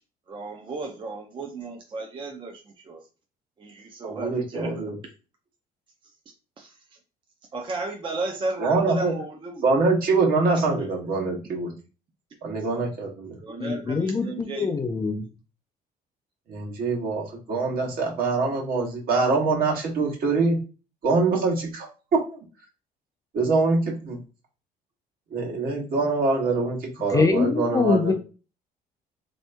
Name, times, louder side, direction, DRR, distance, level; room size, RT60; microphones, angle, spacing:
voice 1, 0.3-3.0 3.6-4.8 6.6-6.7 7.5-9.6 10.4-11.1 13.4-14.7, right 3 dB, 30° right, 1 dB, 0.6 m, -34 dB
voice 2, 4.0-4.9 8.6-9.1 9.6-11.7 12.4-13.4 16.5-20.6 21.0-21.9 23.3-24.2 25.3-28.1, right 3 dB, 60° right, -1 dB, 1.2 m, -24 dB
voice 3, 13.6-15.3 27.1-28.1, left 4 dB, 20° left, 5 dB, 0.4 m, -24 dB
2.8 x 2.6 x 3.3 m, 0.34 s
cardioid pair, 110°, 17 cm